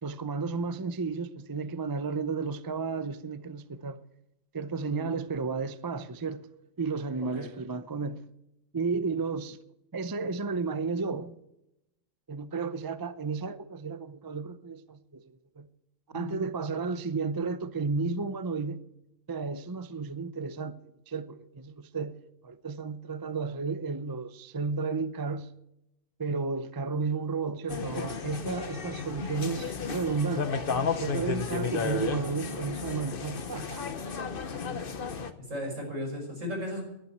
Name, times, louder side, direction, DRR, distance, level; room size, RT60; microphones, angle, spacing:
voice 1, 0.0-4.0 4.5-6.4 6.8-8.3 8.7-9.6 9.9-11.4 12.3-15.2 15.6-15.7 16.1-18.8 19.3-20.8 21.1-22.1 22.4-25.5 26.2-33.9, right 4 dB, 30° right, 0.4 m, -33 dB
sound 1, 27.7-35.3, left 5 dB, 45° left, 1.2 m, -33 dB
voice 2, 35.5-36.8, left 1 dB, 70° right, 6.1 m, -36 dB
11.5 x 11.5 x 7.9 m
omnidirectional pair, 1.4 m